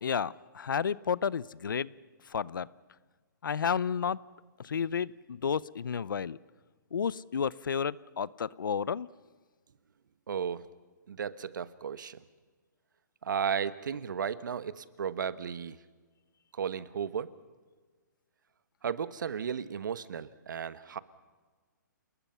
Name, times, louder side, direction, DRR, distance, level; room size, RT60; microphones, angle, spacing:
voice 1, 0.0-1.9 2.3-2.7 3.4-4.2 4.6-6.4 6.9-9.1, left 7 dB, 85° left, 22 dB, 0.7 m, -31 dB
voice 2, 10.3-10.6 11.1-12.2 13.2-15.8 16.5-17.3 18.8-21.0, right 7 dB, 75° right, 14 dB, 1.2 m, -34 dB
30.0 x 20.0 x 5.7 m, 1.4 s
hypercardioid pair, 160°, 11 cm